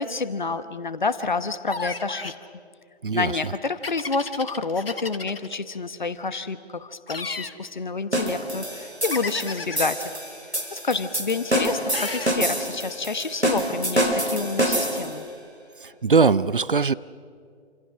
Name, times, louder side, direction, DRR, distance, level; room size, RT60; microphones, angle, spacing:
voice 1, 0.0-2.3 3.1-10.1 10.7-15.2, left 4 dB, 45° left, 13 dB, 1.1 m, -28 dB
sound 1, 1.7-2.4 3.8-5.6 7.1-7.6 9.1-10.0 11.9-12.4, left 3 dB, 60° left, 1.6 m, -33 dB
sound 2, 8.1-15.2, right 1 dB, 85° right, 4.6 m, -27 dB
voice 2, 15.8-16.9, right 4 dB, 55° right, 18 dB, 0.6 m, -20 dB
28.5 x 26.5 x 6.3 m, 2.2 s
figure-of-eight pair, 150°, 32 cm